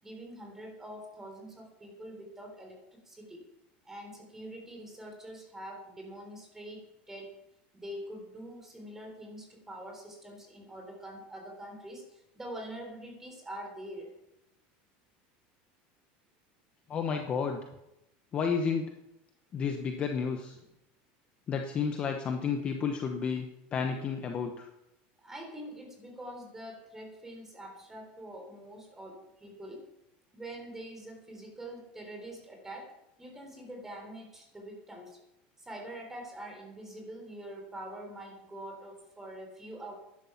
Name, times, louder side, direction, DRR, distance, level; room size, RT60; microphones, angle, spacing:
voice 1, 0.0-3.4 3.8-7.3 7.7-14.1 20.5-20.7 25.2-29.9 30.3-35.2 35.6-40.0, right 1 dB, 10° right, 2 dB, 3.7 m, -45 dB
voice 2, 16.9-17.6 18.3-18.9 19.5-20.6 21.5-24.7, left 6 dB, 25° left, 4 dB, 1.0 m, -31 dB
12.0 x 11.0 x 5.8 m, 0.87 s
supercardioid pair, 165°, 5 cm